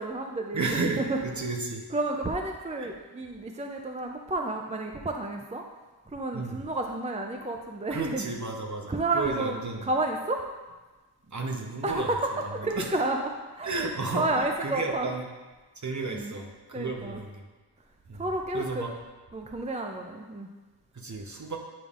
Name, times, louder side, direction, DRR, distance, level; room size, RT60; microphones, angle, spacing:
voice 1, 0.0-1.2 1.9-5.6 6.1-8.3 8.9-10.4 11.8-13.9 14.1-15.1 16.1-16.4 16.7-17.2 18.1-18.9 19.3-20.5, right 2 dB, 20° right, 3 dB, 0.4 m, -31 dB
voice 2, 0.5-1.8 2.8-2.9 6.3-6.6 7.9-9.9 11.3-12.2 12.6-12.9 13.6-15.2 15.7-17.4 18.1-18.3 18.5-18.9 20.9-21.6, right 3 dB, 45° right, 2 dB, 0.8 m, -33 dB
8.7 x 5.4 x 2.4 m, 1.2 s
wide cardioid pair, 80°, 40 cm